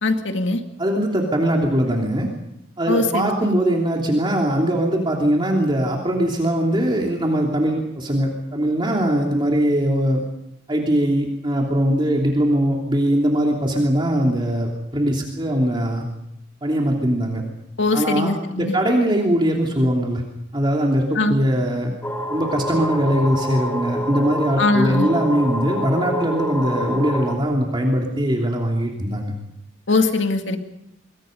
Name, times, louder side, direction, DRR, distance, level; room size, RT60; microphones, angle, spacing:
voice 1, 0.0-0.6 2.9-3.5 17.8-18.8 21.2-21.4 24.6-25.1 29.9-30.6, left 3 dB, 75° left, 5 dB, 2.1 m, -21 dB
voice 2, 0.8-2.3 2.8-10.2 10.7-16.0 16.6-17.4 17.9-18.3 18.6-20.2 20.5-21.9 22.3-29.3, right 1 dB, 25° right, 0 dB, 3.2 m, -21 dB
sound 1, 22.0-27.4, equal, 10° left, 3.0 m, -27 dB
27.5 x 23.0 x 5.4 m, 0.80 s
head